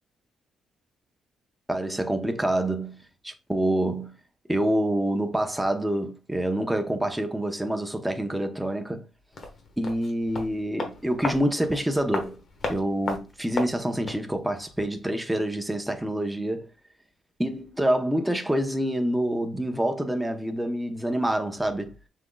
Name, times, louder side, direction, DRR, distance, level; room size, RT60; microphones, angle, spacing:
voice 1, 1.7-3.0 3.2-4.1 4.5-9.0 9.8-12.4 12.7-16.7 17.4-21.9, right 1 dB, 5° right, 0.8 m, -27 dB
sound 1, 9.3-14.3 14.6-14.7, left 3 dB, 50° left, 1.3 m, -35 dB
5.9 x 3.7 x 2.3 m
cardioid pair, 90°, 0 cm